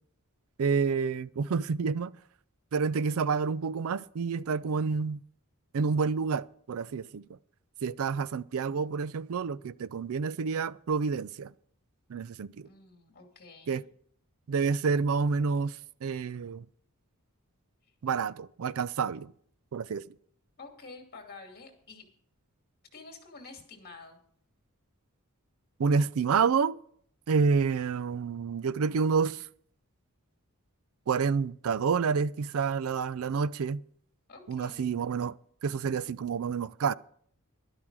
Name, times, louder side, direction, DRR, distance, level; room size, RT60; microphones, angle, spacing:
voice 1, 0.6-2.1 2.7-5.2 5.7-7.2 7.8-11.5 12.1-12.7 13.7-13.8 14.5-16.7 18.0-19.3 19.7-20.0 25.8-26.7 27.3-29.4 31.1-33.8 34.5-35.3 35.6-36.9, right 5 dB, 65° right, 0.4 m, -28 dB
voice 2, 12.6-13.8 20.6-22.0 22.9-24.2 34.3-34.9, left 3 dB, 45° left, 2.6 m, -49 dB
12.0 x 11.5 x 4.8 m
head